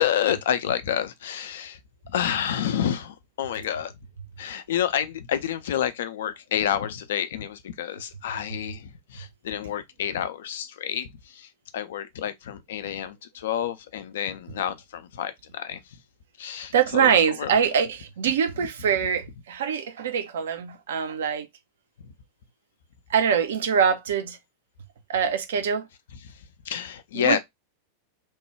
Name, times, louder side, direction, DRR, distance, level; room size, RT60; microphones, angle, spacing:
voice 1, 0.0-1.8 2.0-3.9 4.4-16.0 16.4-17.1 17.4-17.5 26.2-26.4 26.7-27.4, left 10 dB, 60° left, 0.4 m, -29 dB
voice 2, 16.7-21.5 23.1-24.4 25.1-25.9 27.1-27.4, right 7 dB, 60° right, 0.5 m, -24 dB
3.0 x 2.2 x 3.0 m
figure-of-eight pair, 90°, 0 cm